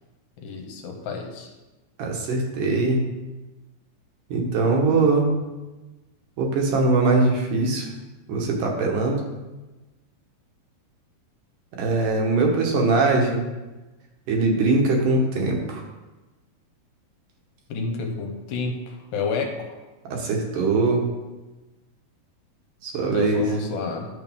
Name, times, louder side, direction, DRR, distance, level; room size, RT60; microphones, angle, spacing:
voice 1, 0.4-1.5 17.7-19.8 23.1-24.1, left 4 dB, 70° left, 3 dB, 2.4 m, -29 dB
voice 2, 2.0-3.0 4.3-5.4 6.4-7.9 8.3-9.2 11.8-13.5 14.3-15.8 20.1-21.0 22.8-23.4, right 3 dB, 65° right, 1 dB, 2.6 m, -21 dB
11.0 x 6.8 x 3.6 m, 1.1 s
omnidirectional pair, 4.5 m